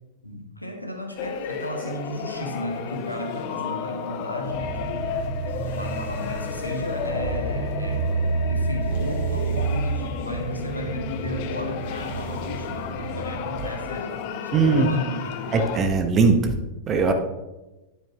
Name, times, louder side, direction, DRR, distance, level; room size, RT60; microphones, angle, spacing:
voice 1, 0.2-5.4 5.7-8.1 8.4-15.5, equal, 85° left, 3 dB, 1.3 m, -35 dB
sound 1, 1.2-15.8, left 7 dB, 45° left, 0.7 m, -33 dB
sound 2, 4.5-13.7, right 4 dB, 60° right, 1.6 m, -30 dB
voice 2, 14.5-14.9 15.5-16.5 16.9-17.1, right 4 dB, 25° right, 6 dB, 1.1 m, -19 dB
9.2 x 8.7 x 3.0 m, 1.1 s
figure-of-eight pair, 90°, 0 cm